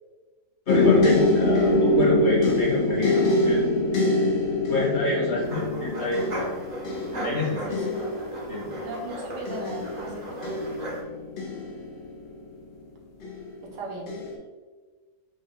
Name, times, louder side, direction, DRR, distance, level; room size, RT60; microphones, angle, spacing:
sound 1, 0.7-12.5 13.2-13.7 14.1-14.3, left 2 dB, 90° left, 0.4 m, -24 dB
voice 1, 0.7-3.6 3.9-4.1 4.7-6.3 7.1-7.6 8.5-8.8, left 1 dB, 50° left, -5 dB, 1.0 m, -28 dB
sound 2, 5.4-11.0, right 1 dB, 40° right, 0.6 m, -37 dB
voice 2, 8.8-10.4 13.6-14.1, right 2 dB, 80° right, -2 dB, 1.5 m, -37 dB
5.0 x 2.1 x 3.5 m, 1.4 s
omnidirectional pair, 1.8 m